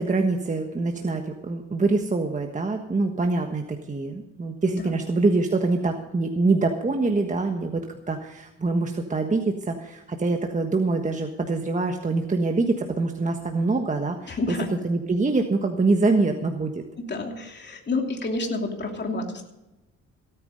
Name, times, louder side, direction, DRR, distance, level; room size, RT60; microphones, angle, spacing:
voice 1, 0.0-14.4 14.8-16.8, right 3 dB, 25° right, 3 dB, 1.4 m, -25 dB
voice 2, 14.3-14.7 17.0-19.4, left 3 dB, 35° left, 2 dB, 2.9 m, -29 dB
16.5 x 9.5 x 5.4 m, 0.97 s
cardioid pair, 90°, 30 cm